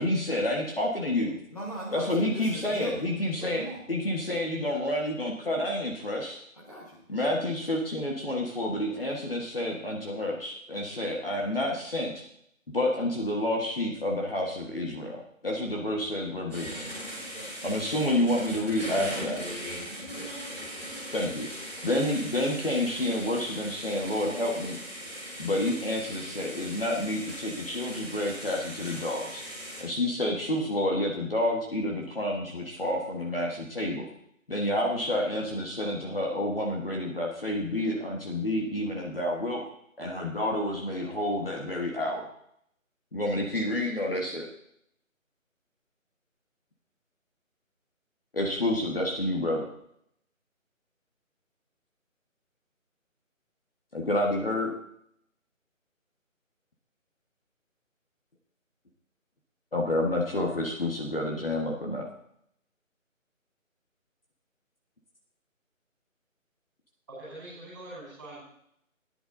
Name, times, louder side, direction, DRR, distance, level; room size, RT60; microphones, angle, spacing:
voice 1, 0.0-1.4 1.9-3.6 3.9-6.4 7.1-12.2 12.7-16.8 17.6-19.4 21.1-21.5 21.8-24.8 25.4-29.4 29.8-34.1 34.5-39.6 40.0-42.3 43.1-44.5 48.3-49.7 53.9-54.7 59.7-62.1, left 1 dB, 45° left, -1 dB, 1.4 m, -29 dB
voice 2, 1.5-3.0 3.5-3.8 6.5-7.0 10.8-11.0 17.3-17.5 20.1-20.3 21.2-21.8, equal, 25° left, -6 dB, 1.4 m, -40 dB
sound 1, 16.5-29.8, equal, 10° left, 2.9 m, -39 dB
voice 3, 67.1-68.4, right 1 dB, 15° right, -7 dB, 4.6 m, -43 dB
15.0 x 10.5 x 2.7 m, 0.72 s
figure-of-eight pair, 180°, 41 cm